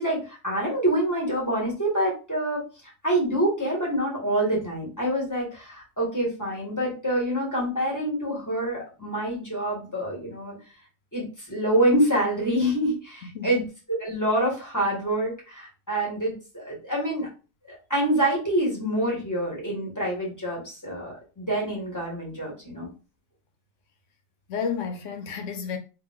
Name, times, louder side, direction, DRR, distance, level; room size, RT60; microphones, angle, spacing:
voice 1, 0.0-2.6 3.0-10.5 11.1-13.6 14.0-17.3 17.7-22.9, right 1 dB, 10° left, 1.7 m, -26 dB
voice 2, 13.2-13.7 24.5-25.8, left 6 dB, 60° left, 0.9 m, -31 dB
3.3 x 3.2 x 3.6 m
omnidirectional pair, 2.0 m